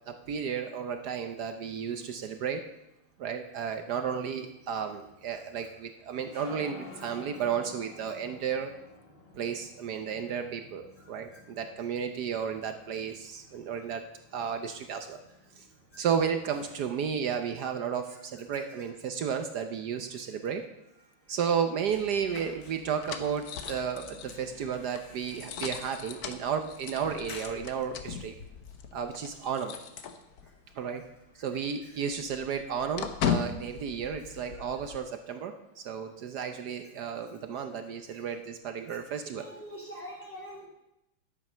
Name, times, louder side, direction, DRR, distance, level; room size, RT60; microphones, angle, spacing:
voice 1, 0.1-2.6 3.2-8.7 9.3-14.0 14.3-15.2 15.6-15.7 16.0-20.6 21.3-28.3 28.9-29.7 30.7-31.0 31.3-39.4, right 7 dB, 65° right, 7 dB, 1.0 m, -33 dB
sound 1, 3.4-17.4, left 3 dB, 30° left, 1.3 m, -52 dB
sound 2, 21.8-23.1 23.4-27.9 28.3-28.4 28.7-29.5 29.8-30.0 30.3-31.0 31.3-31.5, left 6 dB, 85° left, 2.1 m, -52 dB
sound 3, 21.9-30.7 31.0-31.2 31.5-35.0, left 7 dB, 60° left, 1.1 m, -38 dB
voice 2, 34.2-34.6 38.1-38.2 38.9-39.0 39.2-40.7, equal, 5° left, -3 dB, 3.2 m, -46 dB
11.0 x 8.3 x 5.5 m, 0.87 s
omnidirectional pair, 2.4 m